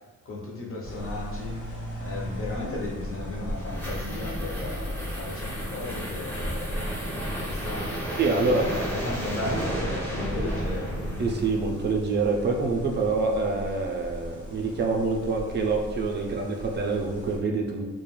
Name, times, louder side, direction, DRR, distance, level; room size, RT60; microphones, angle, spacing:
voice 1, 0.2-11.0, left 2 dB, 45° left, -3 dB, 0.6 m, -35 dB
sound 1, 0.8-17.4, equal, 90° left, 0.8 m, -37 dB
sound 2, 3.1-11.9, right 1 dB, 5° left, 0.6 m, -34 dB
voice 2, 8.2-8.7 11.2-17.9, right 3 dB, 35° right, 1 dB, 0.4 m, -26 dB
2.3 x 2.2 x 3.1 m, 1.2 s
wide cardioid pair, 150°, 30 cm